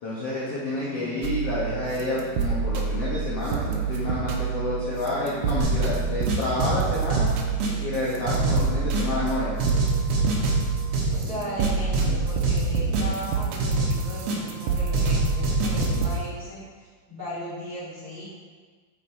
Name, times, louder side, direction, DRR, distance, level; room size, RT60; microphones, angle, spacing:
voice 1, 0.0-7.3 7.8-9.6, left 2 dB, 65° left, -8 dB, 1.6 m, -29 dB
voice 2, 0.7-1.2 11.1-18.2, left 1 dB, 30° right, -13 dB, 2.0 m, -37 dB
sound 1, 1.2-16.1, right 5 dB, 90° right, 2.4 m, -28 dB
sound 2, 5.6-6.0 6.3-8.0 8.3-9.3 9.6-11.3 11.6-13.3 13.6-14.6 14.9-16.1, right 2 dB, 65° right, 1.9 m, -26 dB
7.3 x 4.1 x 4.3 m, 1.5 s
omnidirectional pair, 4.0 m